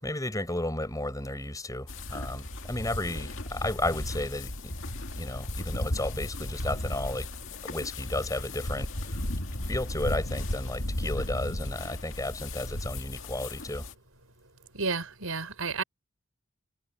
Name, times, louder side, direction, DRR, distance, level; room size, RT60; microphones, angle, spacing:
voice 1, 0.0-4.7 5.2-9.2 9.7-13.9, left 1 dB, 15° left, 6.9 m, -33 dB
sound 1, 1.9-13.9, left 1 dB, 60° left, 2.3 m, -35 dB
voice 2, 14.7-15.8, right 4 dB, 75° right, 4.9 m, -31 dB
head